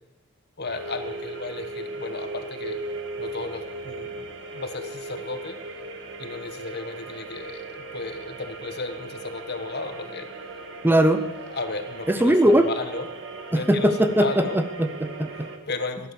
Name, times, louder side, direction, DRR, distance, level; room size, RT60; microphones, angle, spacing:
voice 1, 0.6-2.8 3.2-5.6 6.2-10.3 11.5-13.1 13.5-14.6 15.3-16.1, left 3 dB, 55° left, 8 dB, 1.5 m, -34 dB
sound 1, 0.6-15.6, right 2 dB, 65° right, 1.8 m, -37 dB
voice 2, 10.8-11.2 12.1-12.7 13.5-15.5, right 1 dB, 10° right, 9 dB, 0.7 m, -20 dB
16.5 x 11.0 x 7.1 m, 0.99 s
head